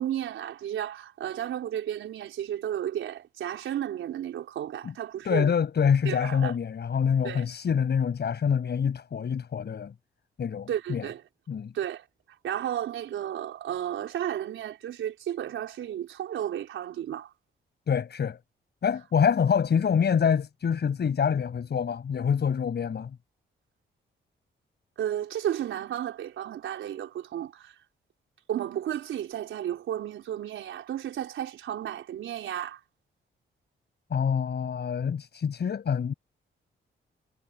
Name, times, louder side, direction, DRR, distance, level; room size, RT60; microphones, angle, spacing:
voice 1, 0.0-5.5 6.0-6.5 7.2-7.5 10.7-11.2 11.7-12.1 12.4-17.3 25.0-27.7 28.5-32.8, right 11 dB, 90° right, 4.8 m, -33 dB
voice 2, 5.2-9.9 10.4-11.1 11.5-11.7 17.9-18.4 18.8-23.2 34.1-36.1, left 7 dB, 60° left, 7.1 m, -26 dB
cardioid pair, 90°, 20 cm